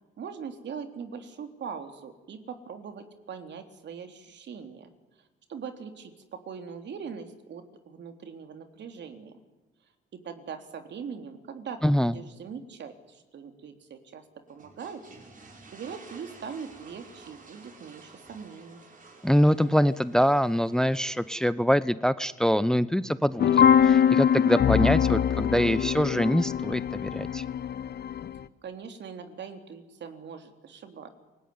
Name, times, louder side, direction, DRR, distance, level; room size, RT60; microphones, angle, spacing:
voice 1, 0.2-4.9 5.5-9.4 10.1-15.0 15.7-18.8 28.6-31.1, right 6 dB, 60° right, 6 dB, 3.6 m, -41 dB
voice 2, 11.8-12.1 19.2-23.5 23.8-27.4, equal, 5° left, 16 dB, 0.8 m, -24 dB
sound 1, 14.5-21.5, right 3 dB, 40° right, 6.2 m, -52 dB
sound 2, 23.4-28.4, left 8 dB, 55° left, 1.1 m, -23 dB
28.0 x 19.0 x 9.7 m, 1.2 s
cardioid pair, 90°, 20 cm